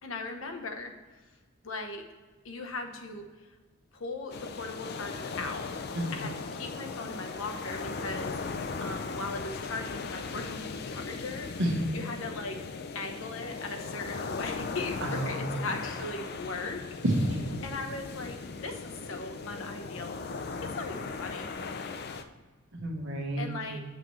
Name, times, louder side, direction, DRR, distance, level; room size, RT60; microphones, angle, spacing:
voice 1, 0.0-0.9 1.6-2.1 2.4-3.5 3.9-5.7 6.1-11.5 11.9-12.5 12.9-16.8 17.6-20.2 20.6-21.5 23.4-23.8, left 3 dB, 80° left, 4 dB, 0.9 m, -38 dB
sound 1, 4.3-22.2, left 4 dB, 50° left, 0.5 m, -38 dB
voice 2, 15.0-15.5 17.0-17.4 22.7-23.8, right 1 dB, 65° right, 1 dB, 1.2 m, -30 dB
8.3 x 5.8 x 3.1 m, 1.3 s
head